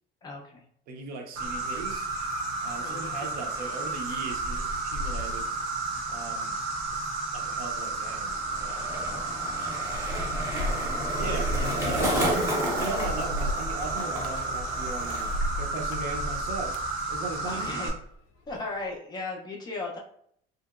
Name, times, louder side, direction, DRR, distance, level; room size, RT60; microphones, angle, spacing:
voice 1, 0.2-0.6 9.1-9.7 11.5-11.7 17.4-17.9 18.5-20.0, left 3 dB, 20° left, -1 dB, 0.4 m, -37 dB
voice 2, 0.9-2.1 2.6-5.5 6.1-6.6 7.3-9.2 11.2-11.6 11.8-12.3 12.8-16.8 17.1-17.9, right 4 dB, 50° right, 4 dB, 0.5 m, -38 dB
sound 1, 1.4-18.1 18.5-18.9, equal, 85° left, 0.5 m, -37 dB
Insect, 1.4-17.9, right 3 dB, 85° right, 1.0 m, -32 dB
Skateboard, 8.0-15.6 15.8-16.4, equal, 15° right, 0.7 m, -32 dB
2.9 x 2.8 x 2.3 m, 0.65 s
cardioid pair, 175°, 20 cm